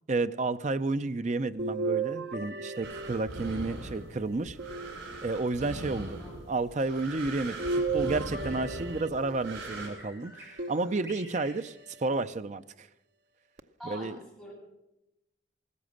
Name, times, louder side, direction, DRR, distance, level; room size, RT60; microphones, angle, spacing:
voice 1, 0.1-4.6 5.2-6.2 6.5-12.9 13.8-14.2, right 3 dB, 35° right, 0.5 m, -31 dB
sound 1, 1.6-3.9 4.6-5.6 7.6-9.7 10.6-11.5 12.1-12.2 13.6-13.7, right 4 dB, 60° right, 0.8 m, -34 dB
sound 2, 2.8-9.9, right 1 dB, 80° right, 6.1 m, -41 dB
voice 2, 5.9-6.4 13.8-14.5, equal, ahead, 7.7 m, -45 dB
Bird vocalization bird call bird song, 6.8-12.3, equal, 15° right, 6.1 m, -53 dB
16.0 x 14.0 x 6.4 m
head